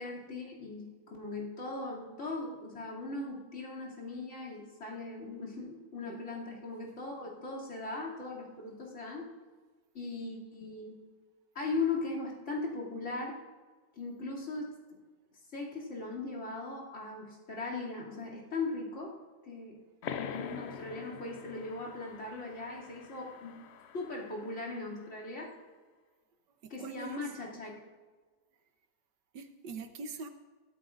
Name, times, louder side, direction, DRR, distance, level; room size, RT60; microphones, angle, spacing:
voice 1, 0.0-9.3 9.9-11.0 11.5-13.4 14.0-14.8 15.5-19.1 19.4-19.8 20.2-23.6 23.9-25.5 26.7-27.7, left 3 dB, 45° left, -5 dB, 2.9 m, -39 dB
sound 1, 20.0-25.3, left 7 dB, 85° left, 0.5 m, -45 dB
voice 2, 26.6-27.3 29.3-30.3, right 4 dB, 85° right, 7 dB, 1.6 m, -43 dB
16.0 x 13.0 x 2.5 m, 1.4 s
omnidirectional pair, 1.8 m